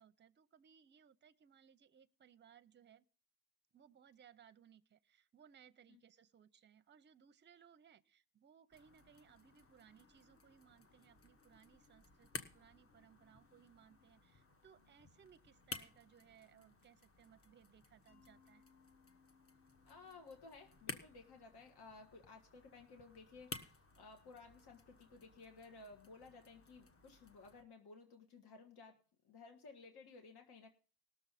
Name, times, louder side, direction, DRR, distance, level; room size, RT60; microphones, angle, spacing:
voice 1, 0.0-3.0 3.7-18.6, right 8 dB, 30° right, 0.5 m, -65 dB
sound 1, 8.7-27.6, left 3 dB, 35° left, 1.2 m, -55 dB
Mallet percussion, 18.1-22.8, left 6 dB, 50° left, 1.3 m, -72 dB
voice 2, 19.9-29.0 29.2-30.7, left 3 dB, 75° left, 1.7 m, -57 dB
19.0 x 6.9 x 4.1 m
wide cardioid pair, 165°, 39 cm